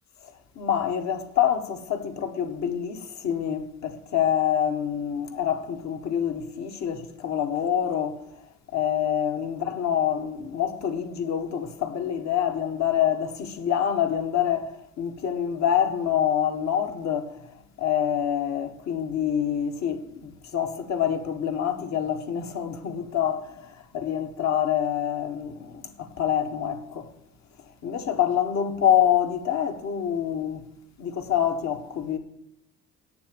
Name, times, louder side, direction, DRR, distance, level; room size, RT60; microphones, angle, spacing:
voice 1, 0.2-8.2 8.7-17.4 17.8-27.1 27.8-30.6 31.0-32.2, left 9 dB, 65° left, 1.5 m, -26 dB
9.4 x 7.0 x 8.7 m
cardioid pair, 90°, 30 cm